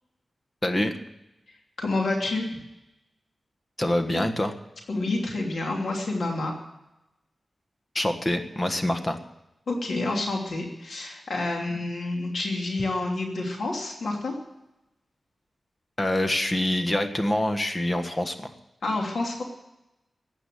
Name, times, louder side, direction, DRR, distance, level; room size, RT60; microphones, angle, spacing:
voice 1, 0.6-0.9 3.8-4.5 7.9-9.2 16.0-18.5, left 1 dB, 25° left, 7 dB, 1.5 m, -25 dB
voice 2, 1.5-2.5 4.9-6.5 9.7-14.3 18.8-19.4, left 2 dB, 80° left, 0 dB, 2.8 m, -28 dB
15.0 x 9.2 x 9.2 m, 0.92 s
wide cardioid pair, 140°, 0 cm